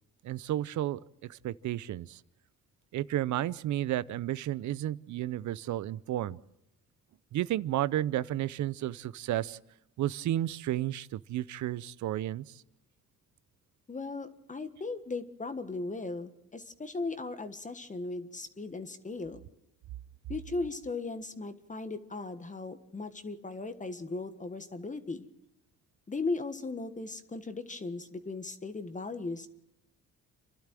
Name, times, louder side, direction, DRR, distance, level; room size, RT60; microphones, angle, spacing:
voice 1, 0.2-1.0 1.3-2.2 2.9-6.4 7.3-9.6 10.0-12.5, right 13 dB, 70° right, 19 dB, 0.7 m, -32 dB
voice 2, 13.9-19.4 20.3-25.3 26.1-29.5, left 3 dB, 25° left, 9 dB, 1.5 m, -37 dB
28.5 x 12.0 x 7.6 m, 0.83 s
cardioid pair, 90°, 30 cm